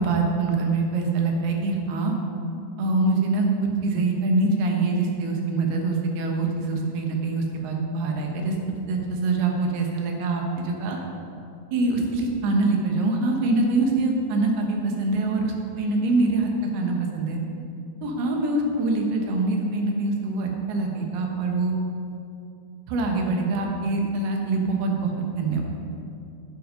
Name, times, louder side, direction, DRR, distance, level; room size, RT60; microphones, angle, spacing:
voice 1, 0.0-2.1 2.8-8.6 8.9-11.0 11.7-17.4 18.0-21.7 22.9-25.7, right 3 dB, 85° right, 1 dB, 3.2 m, -24 dB
10.5 x 8.6 x 5.1 m, 2.6 s
omnidirectional pair, 4.4 m